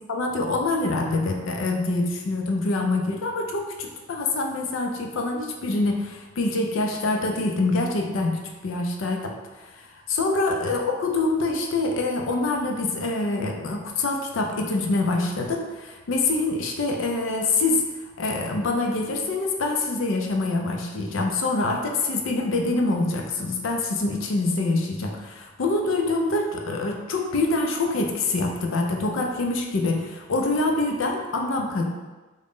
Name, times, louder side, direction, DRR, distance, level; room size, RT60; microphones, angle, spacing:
voice 1, 0.1-17.9 18.2-31.8, left 2 dB, 75° left, 2 dB, 0.4 m, -25 dB
3.7 x 2.1 x 3.5 m, 1.2 s
head